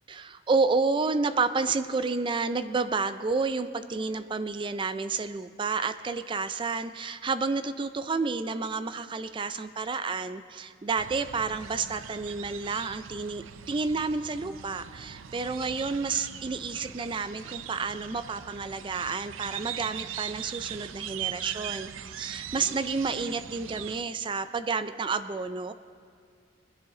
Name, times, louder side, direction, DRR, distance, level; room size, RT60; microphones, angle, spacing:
voice 1, 0.2-25.7, right 4 dB, 25° right, 12 dB, 0.4 m, -30 dB
sound 1, 11.0-24.0, right 9 dB, 90° right, 0.5 m, -40 dB
21.5 x 10.5 x 3.8 m, 2.1 s
head